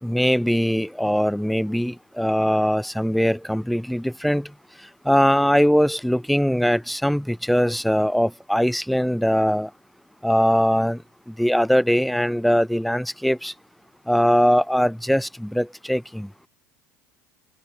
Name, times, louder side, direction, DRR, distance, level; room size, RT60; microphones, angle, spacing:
voice 1, 0.0-4.5 5.0-9.7 10.2-11.0 11.3-13.5 14.1-16.3, equal, ahead, 0.7 m, -21 dB
open air
supercardioid pair, 130°, 7 cm